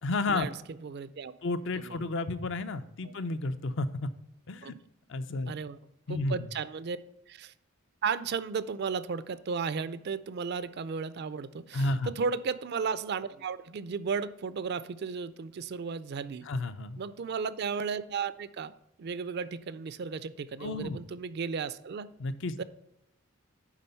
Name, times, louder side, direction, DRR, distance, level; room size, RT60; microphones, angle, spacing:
voice 1, 0.0-0.5 1.4-4.1 4.5-4.7 5.1-5.5 6.1-6.5 11.7-12.1 16.4-17.0 20.6-21.0 22.2-22.6, left 2 dB, 60° left, 11 dB, 0.5 m, -32 dB
voice 2, 0.8-1.3 1.8-2.0 3.0-3.2 4.6-4.7 5.5-5.8 6.1-7.0 7.3-7.5 8.0-16.5 17.0-18.7 19.0-22.1 22.6-22.7, right 5 dB, 50° right, 15 dB, 0.4 m, -34 dB
9.8 x 3.8 x 5.4 m, 0.85 s
head